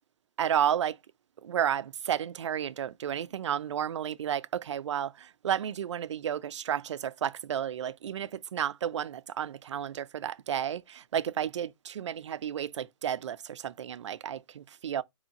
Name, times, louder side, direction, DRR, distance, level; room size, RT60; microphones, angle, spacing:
voice 1, 0.4-1.0 1.4-15.0, right 9 dB, 65° right, 0.4 m, -32 dB
4.4 x 3.8 x 2.9 m
hypercardioid pair, 140°, 17 cm